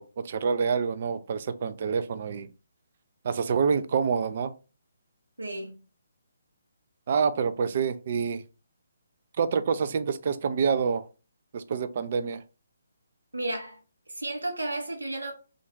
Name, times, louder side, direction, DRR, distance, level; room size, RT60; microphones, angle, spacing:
voice 1, 0.0-2.5 3.2-4.5 7.1-8.4 9.4-11.0 11.5-12.4, right 6 dB, 45° right, 0.3 m, -27 dB
voice 2, 5.4-5.8 13.3-13.8 14.1-15.3, right 2 dB, 80° right, 0.9 m, -33 dB
2.5 x 2.3 x 3.6 m
figure-of-eight pair, 140°, 0 cm